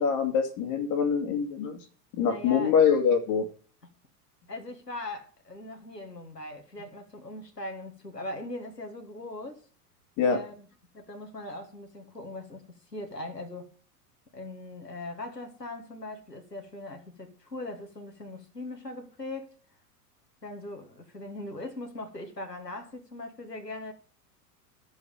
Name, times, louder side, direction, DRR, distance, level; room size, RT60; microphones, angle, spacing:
voice 1, 0.0-1.8 2.1-3.5 10.2-10.4, left 6 dB, 40° left, 2.0 m, -24 dB
voice 2, 2.1-2.7 4.5-9.6 10.2-10.7 10.9-13.7 14.3-19.5 20.4-23.9, left 2 dB, 90° left, 1.7 m, -40 dB
12.5 x 7.2 x 5.3 m
figure-of-eight pair, 85°, 47 cm